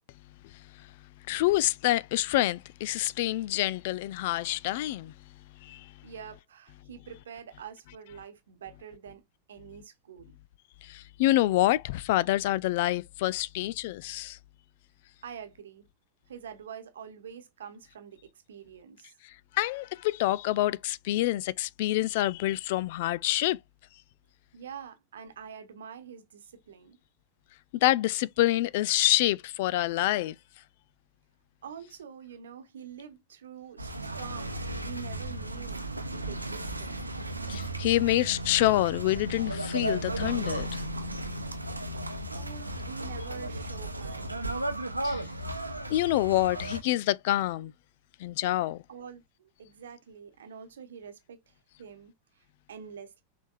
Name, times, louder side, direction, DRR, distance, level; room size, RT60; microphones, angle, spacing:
voice 1, 1.3-5.1 5.6-5.9 10.8-14.4 19.5-23.6 27.8-30.3 37.5-40.8 45.0-45.2 45.9-47.7 48.2-48.8, left 16 dB, 50° left, 0.4 m, -27 dB
voice 2, 6.0-9.2 9.5-10.4 15.2-15.9 16.3-19.1 24.5-27.0 31.6-35.8 36.1-37.0 42.3-44.4 44.7-44.9 48.9-51.5 51.8-53.2, right 7 dB, 65° right, 1.0 m, -46 dB
sound 1, 33.8-46.8, right 1 dB, 85° right, 0.8 m, -35 dB
6.2 x 3.4 x 2.4 m
figure-of-eight pair, 90°, 0 cm